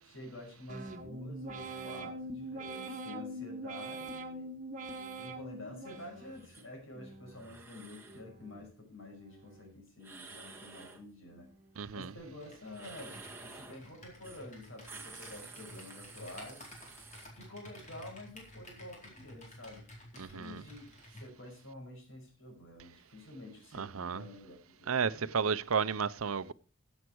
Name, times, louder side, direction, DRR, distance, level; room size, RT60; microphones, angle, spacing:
voice 1, 0.0-4.5 5.2-11.5 11.9-13.2 13.4-16.7 17.3-19.8 20.1-25.4, left 1 dB, 70° left, 5.8 m, -49 dB
sound 1, 0.7-6.5 6.9-7.6 8.0-8.7 9.1-9.8 10.2-10.8 11.3-11.9, right 2 dB, 35° right, 1.7 m, -44 dB
sound 2, 6.4-6.7 7.3-8.2 10.0-11.0 12.7-13.8 14.2-14.5 14.7-17.3, right 4 dB, 10° right, 1.6 m, -51 dB
voice 2, 11.8-12.1 20.2-20.6 23.8-24.2 24.9-26.5, right 6 dB, 90° right, 0.6 m, -32 dB
Computer keyboard, 12.2-21.3, left 1 dB, 35° left, 4.3 m, -53 dB
15.5 x 8.1 x 4.7 m
head